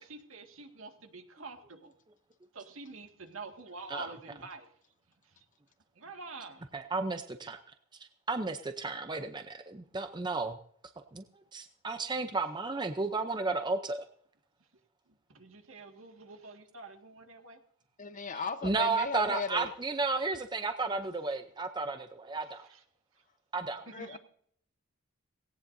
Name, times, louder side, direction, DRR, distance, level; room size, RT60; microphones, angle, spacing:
voice 1, 0.1-1.9 2.5-4.7 6.0-6.7 15.3-17.6 23.9-24.2, right 3 dB, 75° right, 4 dB, 2.0 m, -46 dB
voice 2, 6.7-7.6 8.3-10.6 11.1-11.2 11.5-14.1 18.6-22.7 23.5-23.8, right 3 dB, 20° right, 8 dB, 0.6 m, -33 dB
voice 3, 18.0-19.7 23.9-24.2, left 4 dB, 40° left, 10 dB, 0.9 m, -36 dB
18.0 x 17.5 x 2.7 m, 0.63 s
head